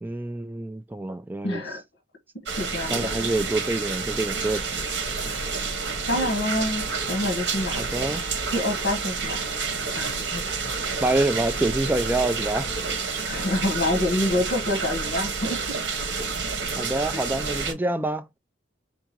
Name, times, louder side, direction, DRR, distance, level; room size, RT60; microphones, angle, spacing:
voice 1, 0.0-1.6 2.9-4.8 7.8-8.2 11.0-12.7 16.8-18.4, right 2 dB, 10° right, 0.3 m, -26 dB
voice 2, 1.4-1.8 2.6-3.4 6.1-7.9 8.4-9.4 9.9-10.4 13.3-15.6 17.1-17.2, left 1 dB, 75° left, 1.1 m, -27 dB
sound 1, 2.5-17.7, right 4 dB, 75° right, 1.1 m, -29 dB
3.6 x 3.6 x 3.1 m
head